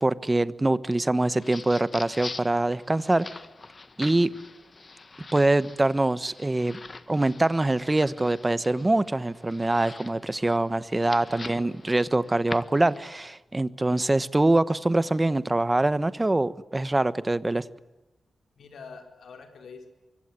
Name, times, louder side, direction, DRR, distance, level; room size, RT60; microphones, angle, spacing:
voice 1, 0.0-3.3 4.0-4.3 5.3-6.8 7.1-17.6, right 2 dB, 15° right, 16 dB, 1.2 m, -24 dB
sound 1, 1.2-13.2, left 3 dB, 35° left, 1.5 m, -44 dB
voice 2, 11.3-11.8 18.6-19.9, left 5 dB, 75° left, 5 dB, 4.6 m, -46 dB
25.0 x 23.5 x 9.7 m, 1.0 s
wide cardioid pair, 115°, 0 cm